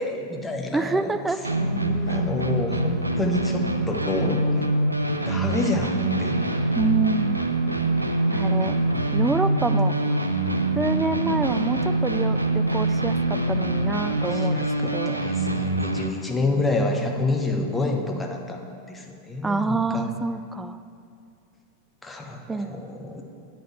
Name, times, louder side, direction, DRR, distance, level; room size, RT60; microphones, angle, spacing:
voice 1, 0.0-1.1 1.5-4.7 5.3-6.5 14.3-20.1 22.0-23.2, left 2 dB, 10° left, 2 dB, 1.0 m, -28 dB
voice 2, 0.7-1.4 6.8-7.4 8.3-8.8 9.1-10.0 10.8-15.2 19.4-20.8 22.5-22.7, right 3 dB, 10° right, 12 dB, 0.3 m, -27 dB
sound 1, 1.4-16.1, right 2 dB, 85° right, 0.5 m, -24 dB
9.0 x 4.5 x 7.1 m, 2.4 s
figure-of-eight pair, 90°, 0 cm